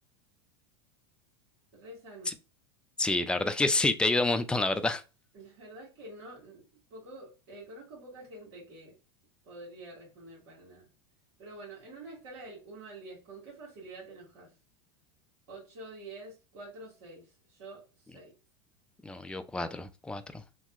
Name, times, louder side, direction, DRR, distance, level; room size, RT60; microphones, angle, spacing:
voice 1, 1.7-2.4 5.3-6.6 6.9-8.9 9.4-10.9 11.4-14.5 15.5-18.3, right 2 dB, 65° right, 1.6 m, -47 dB
voice 2, 3.0-5.0 19.0-20.4, left 2 dB, 5° left, 0.3 m, -28 dB
2.9 x 2.2 x 3.0 m
hypercardioid pair, 95°, 15 cm